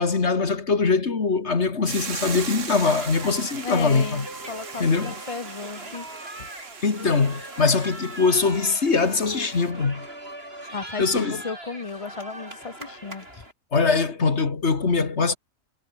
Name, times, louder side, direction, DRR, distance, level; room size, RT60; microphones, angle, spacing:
voice 1, 0.0-4.3 4.8-5.1 6.8-10.1 11.0-11.4 13.7-15.4, left 4 dB, 55° left, 2.3 m, -22 dB
Hiss / Boiling, 1.9-9.7, right 6 dB, 65° right, 1.9 m, -39 dB
sound 1, 2.8-13.5, right 1 dB, 45° right, 8.5 m, -40 dB
voice 2, 3.6-6.1 10.7-13.3, left 4 dB, 30° left, 0.8 m, -34 dB
omnidirectional pair, 1.4 m